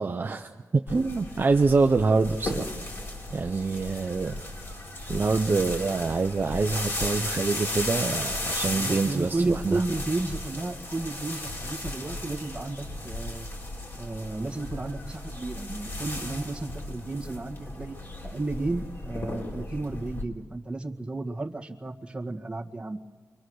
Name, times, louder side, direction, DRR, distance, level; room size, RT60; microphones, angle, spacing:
voice 1, 0.0-2.7 3.3-4.4 5.1-9.8, right 4 dB, 40° right, 4 dB, 0.8 m, -25 dB
sound 1, 0.9-20.2, left 1 dB, 45° left, 3.8 m, -35 dB
voice 2, 8.7-13.5 14.0-18.0 18.2-23.0, right 2 dB, 15° right, -1 dB, 1.9 m, -33 dB
28.0 x 24.0 x 6.4 m, 1.4 s
cardioid pair, 75°, 6 cm